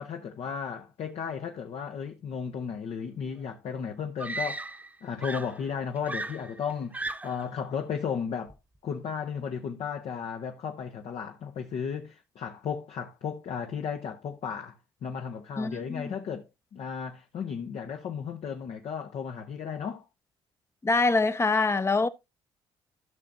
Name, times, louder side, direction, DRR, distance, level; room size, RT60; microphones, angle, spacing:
voice 1, 0.0-4.7 5.0-8.5 8.8-20.0, left 7 dB, 65° left, 0.9 m, -34 dB
Screaming, 3.4-3.5 4.2-5.0 5.2-7.5 8.5-8.8, right 2 dB, 15° right, 0.9 m, -36 dB
voice 2, 15.6-16.1 20.8-22.1, left 3 dB, 25° left, 0.7 m, -25 dB
14.0 x 5.9 x 2.6 m
supercardioid pair, 65°, 11 cm